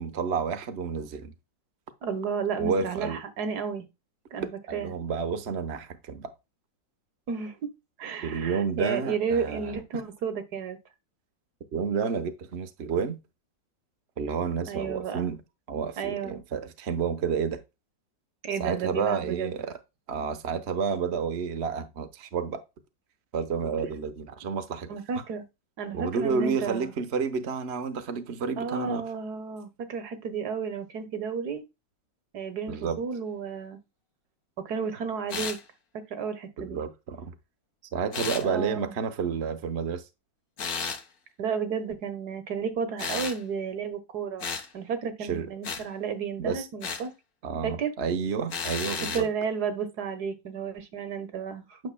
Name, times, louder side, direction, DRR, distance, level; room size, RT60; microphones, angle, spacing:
voice 1, 0.0-1.3 2.6-3.2 4.7-6.3 8.2-9.8 11.7-13.2 14.2-15.4 15.7-17.6 18.6-19.7 20.1-22.6 23.3-24.9 25.9-29.0 32.7-33.0 36.6-37.3 37.9-40.0 45.3-45.5 46.4-46.7 47.4-49.3, right 6 dB, 45° right, 1.0 m, -30 dB
voice 2, 2.0-3.8 4.3-4.9 7.3-7.6 8.0-10.8 14.7-15.3 16.0-16.4 18.4-19.5 24.9-25.4 25.8-26.9 28.6-31.6 32.3-33.8 34.6-35.6 36.1-36.8 38.4-39.0 41.4-44.5 44.7-47.1 47.6-47.9 49.1-51.8, right 6 dB, 60° right, 1.6 m, -32 dB
sound 1, 35.3-35.6 38.1-38.4 40.6-41.0 43.0-43.4 44.4-44.7 45.6-45.8 46.8-47.1 48.5-49.3, left 6 dB, 55° left, 1.6 m, -33 dB
9.2 x 6.5 x 2.2 m
omnidirectional pair, 2.0 m